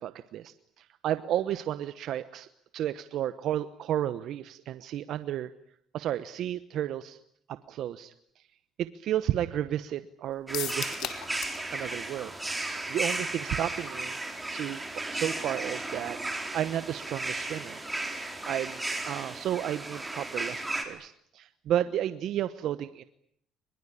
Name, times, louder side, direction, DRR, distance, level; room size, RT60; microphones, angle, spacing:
voice 1, 0.0-2.5 2.7-5.5 5.9-7.2 7.5-8.4 8.8-11.2 11.7-12.3 12.6-14.2 14.5-17.8 18.4-23.0, right 11 dB, 70° right, 12 dB, 1.0 m, -32 dB
sound 1, 10.5-11.6 11.9-12.0 12.4-12.5, left 12 dB, 75° left, 2.8 m, -35 dB
sound 2, 10.5-20.8, right 2 dB, 10° right, 4.5 m, -35 dB
23.0 x 22.0 x 10.0 m, 0.69 s
cardioid pair, 110°, 0 cm